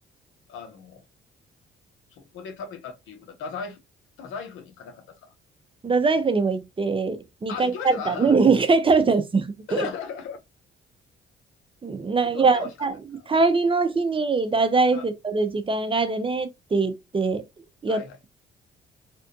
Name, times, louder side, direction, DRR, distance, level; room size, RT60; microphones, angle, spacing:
voice 1, 0.5-1.0 2.1-3.8 4.2-5.3 7.5-8.4 9.7-10.4 12.2-12.9 13.1-13.2 14.9-15.1 17.9-18.2, left 6 dB, 90° left, 0.9 m, -36 dB
voice 2, 5.8-9.9 11.8-12.9 13.3-17.4 17.8-18.0, right 4 dB, 25° right, 0.7 m, -22 dB
3.4 x 2.5 x 2.6 m
cardioid pair, 90°, 20 cm